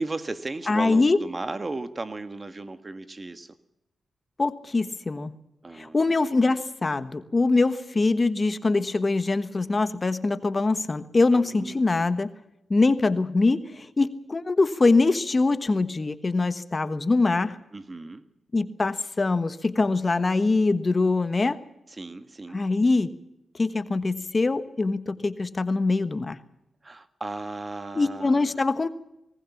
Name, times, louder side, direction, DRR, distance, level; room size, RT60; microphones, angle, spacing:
voice 1, 0.0-3.6 5.6-6.1 11.3-12.1 17.7-18.2 21.9-22.6 26.8-28.6, right 2 dB, 35° right, 10 dB, 1.7 m, -35 dB
voice 2, 0.7-1.2 4.4-5.3 5.7-12.3 12.7-17.6 18.5-21.6 22.5-23.1 23.5-26.4 27.9-28.9, left 3 dB, 35° left, 12 dB, 1.3 m, -23 dB
19.5 x 18.5 x 7.2 m, 0.86 s
cardioid pair, 60°, 0 cm